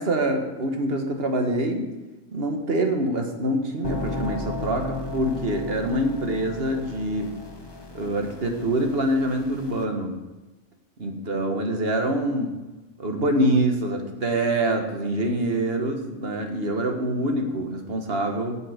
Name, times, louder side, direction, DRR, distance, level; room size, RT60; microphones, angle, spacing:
voice 1, 0.0-1.8 2.3-7.3 7.9-10.2 11.0-12.5 13.0-18.6, right 1 dB, 45° right, 4 dB, 1.6 m, -25 dB
sound 1, 3.8-9.8, left 3 dB, 20° left, 1.0 m, -35 dB
14.5 x 7.2 x 5.1 m, 1.1 s
omnidirectional pair, 1.4 m